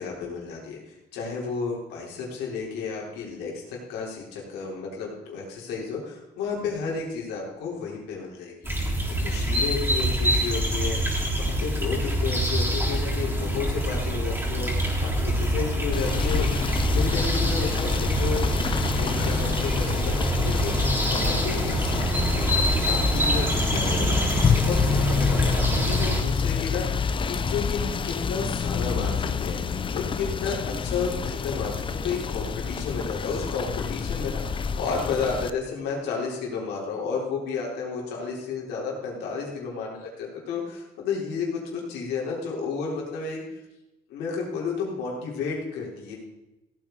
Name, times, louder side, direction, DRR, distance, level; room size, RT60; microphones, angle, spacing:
voice 1, 0.0-11.0 11.4-14.9 15.2-16.5 16.9-34.4 34.8-41.5 41.7-43.4 44.1-46.2, left 5 dB, 90° left, -2 dB, 4.0 m, -32 dB
Small suburban stream with birds, 8.6-26.2, equal, 15° right, 3.7 m, -25 dB
Rain / Motor vehicle (road), 15.9-35.5, left 6 dB, 30° left, 0.6 m, -28 dB
16.5 x 8.8 x 4.0 m, 0.96 s
cardioid pair, 110°, 17 cm